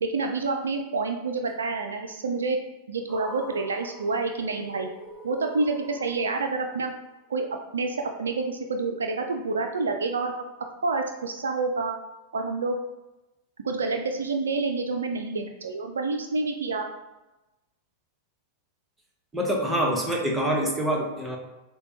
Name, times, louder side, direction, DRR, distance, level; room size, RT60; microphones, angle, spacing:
voice 1, 0.0-2.6 2.9-4.9 5.2-6.9 7.3-7.5 7.7-10.3 10.8-12.0 12.3-12.8 13.6-16.9, right 3 dB, 70° right, 4 dB, 0.4 m, -28 dB
sound 1, 3.1-7.3, right 2 dB, 25° right, 1.4 m, -43 dB
voice 2, 19.3-21.4, right 1 dB, 5° right, -1 dB, 0.9 m, -25 dB
6.5 x 2.2 x 2.8 m, 1.0 s
figure-of-eight pair, 90°, 0 cm